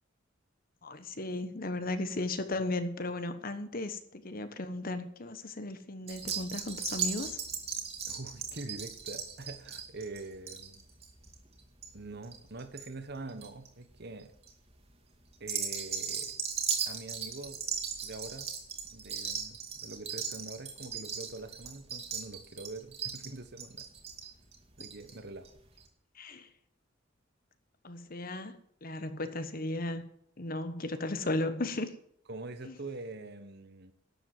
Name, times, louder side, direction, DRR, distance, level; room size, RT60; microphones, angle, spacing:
voice 1, 0.8-7.4 26.1-26.5 27.8-30.0 30.4-31.9 32.6-32.7, left 2 dB, 45° left, 1.2 m, -35 dB
sound 1, 6.1-12.9 13.1-13.7 14.2-14.5 15.3-25.1 25.4-25.5 25.8-25.9, right 6 dB, 35° right, 2.3 m, -37 dB
voice 2, 8.1-10.8 11.9-14.3 15.4-16.3 16.9-17.8 18.0-18.5 18.9-23.9 24.8-25.5 32.3-33.9, right 2 dB, 55° right, 1.3 m, -44 dB
12.0 x 7.7 x 7.6 m
head